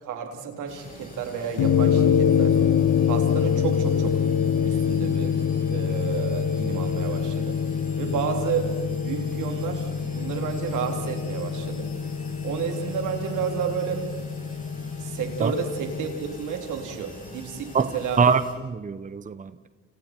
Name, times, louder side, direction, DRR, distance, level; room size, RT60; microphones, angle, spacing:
voice 1, 0.0-2.6 3.1-4.2 4.6-5.3 5.7-7.6 8.0-8.7 9.0-11.9 12.4-14.1 15.0-18.2, right 7 dB, 80° right, 3 dB, 3.7 m, -31 dB
sound 1, 0.7-18.5, left 2 dB, 25° left, 7.9 m, -44 dB
sound 2, 1.6-16.1, left 7 dB, 75° left, 1.7 m, -25 dB
voice 2, 18.2-19.7, right 5 dB, 25° right, 12 dB, 0.9 m, -23 dB
30.0 x 28.5 x 4.6 m, 1.4 s
cardioid pair, 90°, 30 cm